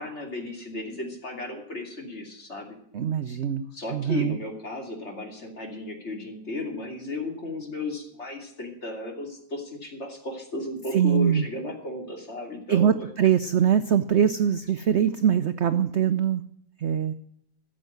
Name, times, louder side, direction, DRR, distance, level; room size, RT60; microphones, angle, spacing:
voice 1, 0.0-2.8 3.7-13.1, left 2 dB, 40° left, 2 dB, 3.1 m, -34 dB
voice 2, 2.9-3.6 3.9-4.4 10.9-11.4 12.7-16.4 16.8-17.1, right 8 dB, 60° right, 11 dB, 0.7 m, -22 dB
14.0 x 7.6 x 7.9 m, 0.72 s
omnidirectional pair, 1.9 m